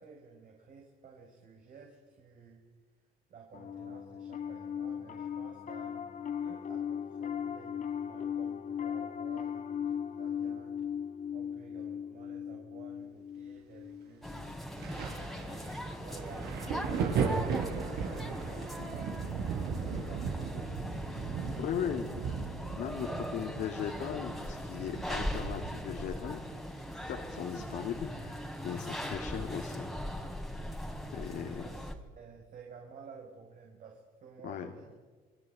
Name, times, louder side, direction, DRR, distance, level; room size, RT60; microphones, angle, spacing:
voice 1, 0.0-2.6 3.3-6.0 6.4-10.8 11.3-14.9 15.5-20.6 21.4-22.1 23.0-23.6 31.3-34.9, right 5 dB, 50° right, 1 dB, 5.4 m, -53 dB
Piano, 3.5-15.0, left 8 dB, 50° left, 2.5 m, -38 dB
sound 1, 14.2-31.9, equal, ahead, 3.5 m, -40 dB
Thunder, 14.8-28.1 28.4-29.7 30.5-30.7, right 6 dB, 75° right, 6.3 m, -37 dB
voice 2, 21.6-22.2 22.7-23.1 23.3-26.4 27.1-29.8 31.1-31.7 34.4-34.7, left 8 dB, 70° left, 1 dB, 2.8 m, -38 dB
28.5 x 21.0 x 9.5 m, 1.4 s
cardioid pair, 110°, 17 cm